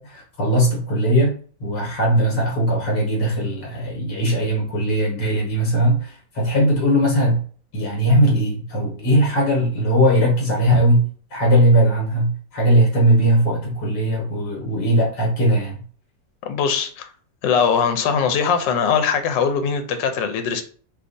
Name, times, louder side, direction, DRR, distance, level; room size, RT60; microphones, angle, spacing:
voice 1, 0.0-1.3 1.6-7.4 7.7-11.1 11.3-15.8, right 1 dB, 70° left, -3 dB, 1.6 m, -19 dB
voice 2, 16.4-17.1 17.4-20.6, left 6 dB, 85° left, 8 dB, 1.3 m, -21 dB
4.4 x 2.4 x 2.6 m, 0.42 s
omnidirectional pair, 1.9 m